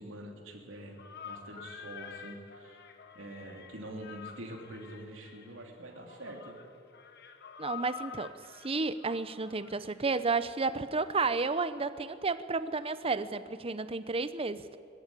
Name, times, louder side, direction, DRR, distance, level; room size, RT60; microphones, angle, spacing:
voice 1, 0.0-2.9 3.1-6.6, right 1 dB, 75° right, 1 dB, 3.0 m, -45 dB
sound 1, 1.0-10.4, left 7 dB, 55° left, 1.5 m, -48 dB
voice 2, 7.6-14.8, right 4 dB, 30° right, 13 dB, 0.7 m, -32 dB
20.5 x 14.5 x 9.8 m, 2.5 s
head